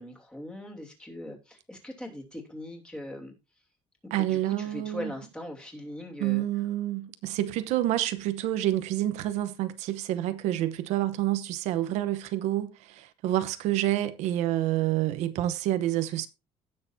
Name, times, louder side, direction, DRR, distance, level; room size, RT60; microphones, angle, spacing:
voice 1, 0.0-3.3 4.0-6.4, left 1 dB, 10° left, 2.8 m, -40 dB
voice 2, 4.1-5.1 6.2-16.3, right 14 dB, 85° right, 0.9 m, -28 dB
16.5 x 6.6 x 2.7 m
cardioid pair, 160°, 11 cm